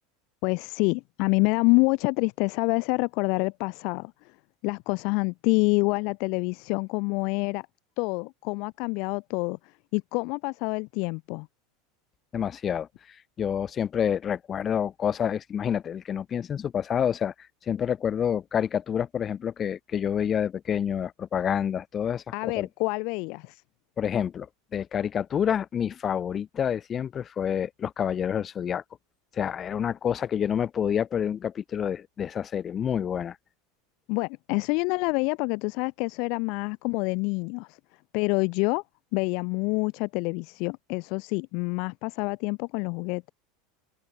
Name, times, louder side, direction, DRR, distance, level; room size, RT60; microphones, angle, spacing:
voice 1, 0.4-4.4 4.6-7.7 8.0-11.5 22.3-23.6 34.1-37.8 38.1-38.8 39.1-43.2, left 31 dB, 60° left, 0.4 m, -27 dB
voice 2, 12.3-12.9 13.4-17.3 17.7-22.7 24.0-24.5 24.7-28.8 29.3-33.4, left 8 dB, 35° left, 0.9 m, -28 dB
hypercardioid pair, 95°, 0 cm